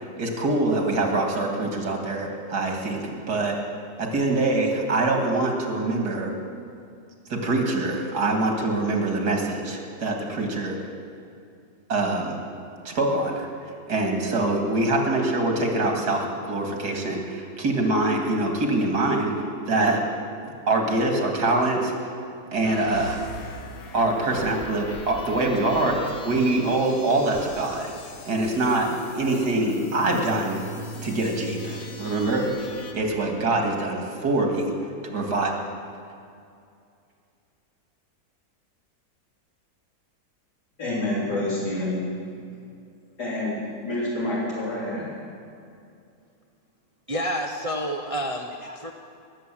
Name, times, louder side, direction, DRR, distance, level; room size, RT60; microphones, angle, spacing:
voice 1, 0.0-3.6 4.0-6.3 7.3-10.8 11.9-12.4 12.8-20.0 20.4-22.0 22.5-23.2 23.9-27.9 28.3-30.6 31.0-34.7 35.0-35.5, right 2 dB, 90° right, 2 dB, 2.6 m, -24 dB
sound 1, 22.6-32.9, left 1 dB, 65° left, 1.7 m, -40 dB
voice 2, 40.8-42.3 43.2-43.6 43.8-45.1, left 1 dB, 85° left, -8 dB, 4.3 m, -28 dB
voice 3, 47.1-48.9, equal, 30° right, 2 dB, 0.6 m, -29 dB
19.5 x 7.8 x 7.5 m, 2.4 s
omnidirectional pair, 1.7 m